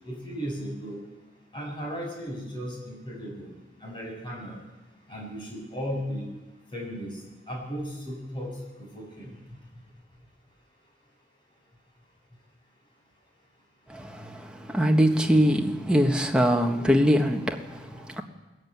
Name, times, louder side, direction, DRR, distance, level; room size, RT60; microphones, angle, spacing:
voice 1, 0.0-1.0 1.5-3.5 3.8-4.6 5.1-6.2 6.7-7.2 7.5-8.5 8.8-9.3, equal, 25° left, -1 dB, 6.8 m, -35 dB
voice 2, 13.9-18.2, equal, 5° right, 2 dB, 1.5 m, -23 dB
20.5 x 14.5 x 9.4 m, 1.1 s
head